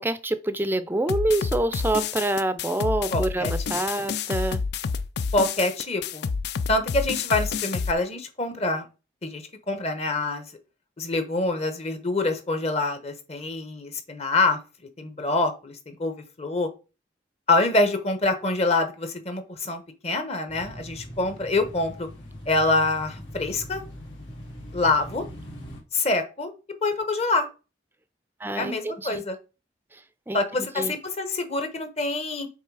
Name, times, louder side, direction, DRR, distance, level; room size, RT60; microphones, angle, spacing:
voice 1, 0.0-4.6 28.4-29.2 29.9-30.0 30.3-30.9, right 1 dB, 10° right, 0.5 m, -27 dB
sound 1, 1.1-7.9, left 5 dB, 60° left, 0.4 m, -29 dB
voice 2, 3.1-3.5 5.3-6.3 6.7-8.9 9.2-10.4 11.0-14.6 15.0-16.7 17.5-22.1 22.5-23.8 24.7-25.2 25.9-26.5 26.8-27.5 28.6-29.4 30.3-32.5, left 2 dB, 35° left, 1.1 m, -25 dB
sound 2, 20.5-25.8, equal, 85° left, 3.0 m, -41 dB
7.8 x 3.2 x 4.8 m
head